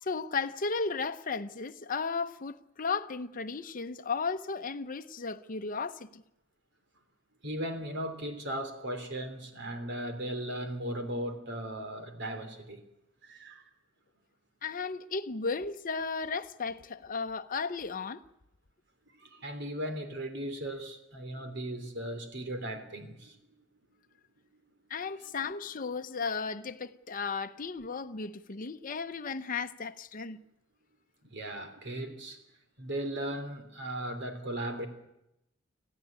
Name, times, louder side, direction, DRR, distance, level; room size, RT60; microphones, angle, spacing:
voice 1, 0.0-6.2 14.6-18.2 24.9-30.4, left 4 dB, 45° left, 0.8 m, -35 dB
voice 2, 7.4-12.8 13.2-13.6 19.1-23.4 25.2-25.3 31.2-32.4 32.8-34.9, right 1 dB, 60° right, 3.2 m, -37 dB
25.5 x 15.0 x 8.9 m
head